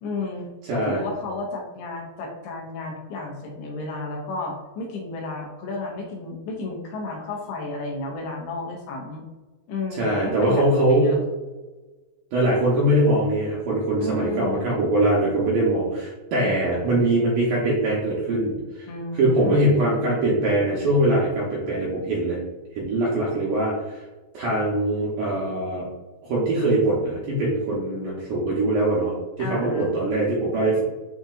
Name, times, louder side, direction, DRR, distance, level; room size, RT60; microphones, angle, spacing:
voice 1, 0.0-9.2 9.7-11.2 14.0-14.7 16.4-17.1 18.9-19.7 29.4-29.9, left 3 dB, 85° left, 0 dB, 2.8 m, -32 dB
voice 2, 0.7-1.0 9.9-11.1 12.3-18.9 19.2-22.4 22.8-24.0 24.3-25.9 26.2-30.8, right 1 dB, 75° right, -6 dB, 1.9 m, -22 dB
7.8 x 2.7 x 2.4 m, 1.2 s
omnidirectional pair, 4.7 m